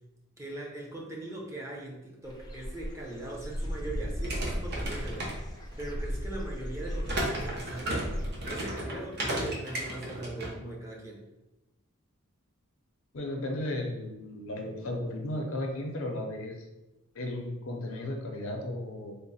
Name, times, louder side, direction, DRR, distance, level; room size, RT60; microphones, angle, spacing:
voice 1, 0.4-5.4 5.8-8.1 8.4-11.2, right 2 dB, 15° right, -3 dB, 0.7 m, -40 dB
Dog / Bird, 2.2-8.5, equal, 20° left, 0.5 m, -36 dB
sound 1, 4.2-5.9 7.0-10.5, right 1 dB, 50° right, 0.9 m, -34 dB
voice 2, 13.1-16.6 17.1-19.2, left 1 dB, 65° left, 2 dB, 0.6 m, -35 dB
3.6 x 2.1 x 4.1 m, 0.99 s
head